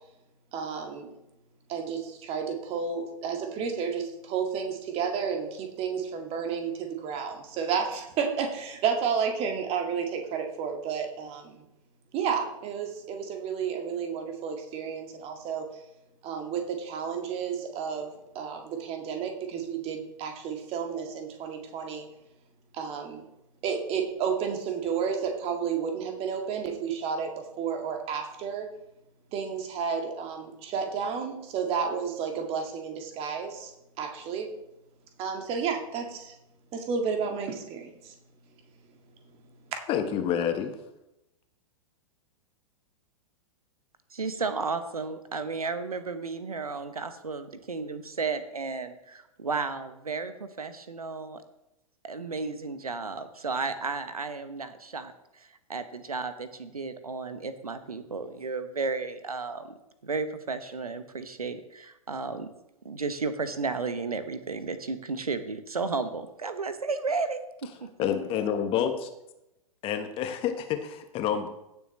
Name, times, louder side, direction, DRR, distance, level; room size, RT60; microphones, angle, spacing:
voice 1, 0.5-1.1 1.7-11.6 12.1-15.6 16.2-18.1 18.3-22.1 22.7-23.2 23.6-27.3 27.6-28.7 29.3-33.7 34.0-34.5 35.2-36.3 36.7-38.1, right 6 dB, 30° right, 3 dB, 1.9 m, -31 dB
voice 2, 39.9-40.7 68.0-68.9 69.8-71.5, left 9 dB, 30° left, 7 dB, 1.2 m, -28 dB
voice 3, 44.1-51.4 52.0-59.8 60.0-62.5 62.8-67.9, right 4 dB, 80° right, 11 dB, 1.0 m, -33 dB
16.0 x 7.1 x 3.2 m, 0.88 s
figure-of-eight pair, 105°, 18 cm